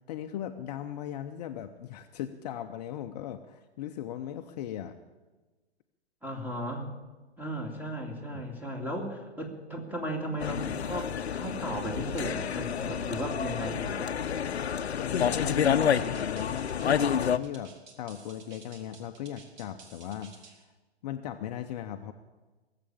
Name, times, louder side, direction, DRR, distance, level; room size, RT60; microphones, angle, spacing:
voice 1, 0.1-5.0 8.3-8.5 15.0-20.7 21.0-22.1, left 10 dB, 40° left, 7 dB, 0.8 m, -38 dB
voice 2, 6.2-6.9 7.4-14.0, equal, 5° right, 3 dB, 2.3 m, -36 dB
sound 1, 10.4-17.4, left 8 dB, 75° left, 0.8 m, -29 dB
sound 2, 15.5-20.6, right 4 dB, 45° right, 2.5 m, -53 dB
18.5 x 7.8 x 8.7 m, 1.2 s
figure-of-eight pair, 120°, 32 cm